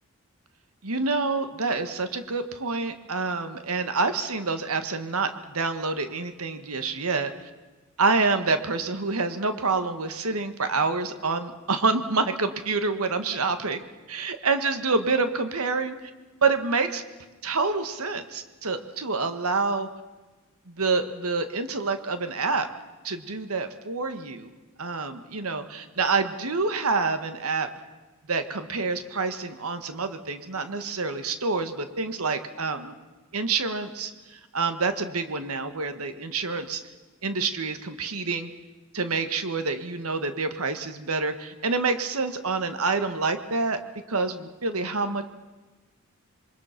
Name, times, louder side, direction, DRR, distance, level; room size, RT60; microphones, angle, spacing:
voice 1, 0.8-7.5 8.0-13.8 14.1-16.0 16.4-17.0 17.4-19.9 20.7-22.7 23.0-24.5 24.8-27.7 28.3-32.9 33.3-36.8 37.2-38.5 38.9-43.8 44.1-45.2, right 4 dB, 85° right, 9 dB, 1.6 m, -27 dB
27.5 x 23.5 x 6.0 m, 1.2 s
head